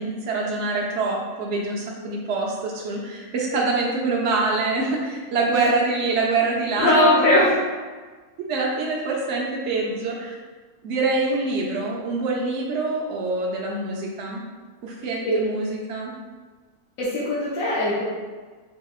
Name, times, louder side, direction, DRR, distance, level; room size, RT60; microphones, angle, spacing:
voice 1, 0.0-7.1 8.5-10.3 10.8-14.4 14.8-16.1, right 3 dB, 60° right, -2 dB, 0.8 m, -25 dB
voice 2, 6.8-7.5 15.2-15.4 17.0-18.0, left 1 dB, 65° left, -8 dB, 1.1 m, -19 dB
3.7 x 2.8 x 2.3 m, 1.4 s
omnidirectional pair, 1.6 m